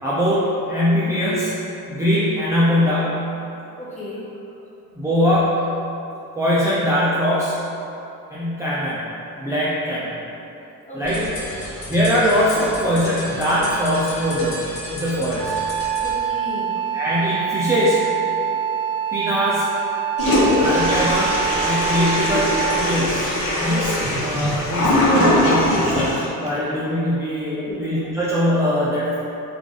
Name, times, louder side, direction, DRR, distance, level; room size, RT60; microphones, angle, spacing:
voice 1, 0.0-1.5 1.9-3.3 4.9-5.6 6.4-7.6 8.3-9.0 9.4-10.1 10.9-11.3 11.9-14.6 14.9-15.5 16.9-18.0 19.1-19.7 20.6-23.3 23.6-29.2, equal, 10° right, -10 dB, 0.4 m, -21 dB
voice 2, 3.8-4.3 10.8-11.5 16.0-16.7 27.5-27.9, left 1 dB, 20° left, -7 dB, 0.9 m, -34 dB
sound 1, 11.0-16.2, left 1 dB, 85° left, 0.9 m, -33 dB
Wind instrument woodwind instrument, 15.4-23.0, right 9 dB, 70° right, 0.6 m, -25 dB
Toilet flush, 20.2-26.2, left 1 dB, 45° left, 1.1 m, -20 dB
3.2 x 2.5 x 3.7 m, 2.9 s
cardioid pair, 110°, 33 cm